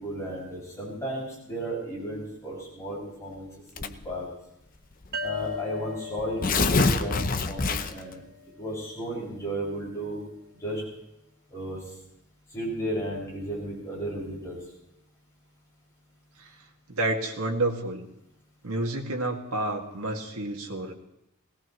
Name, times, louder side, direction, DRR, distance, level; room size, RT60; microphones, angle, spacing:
voice 1, 0.0-3.5 3.7-4.3 5.2-8.2 8.6-10.2 10.6-10.8 11.5-11.8 12.5-14.6, right 1 dB, 15° left, -6 dB, 6.9 m, -34 dB
Tearing, 3.8-4.2 5.0-5.1 5.4-5.5 6.2-8.1, left 3 dB, 40° left, 0.7 m, -25 dB
sound 1, 5.1-8.6, left 4 dB, 45° right, 1.1 m, -38 dB
voice 2, 16.9-18.1 18.6-20.9, right 2 dB, 85° right, 1 dB, 2.1 m, -29 dB
21.0 x 17.5 x 3.2 m, 0.84 s
head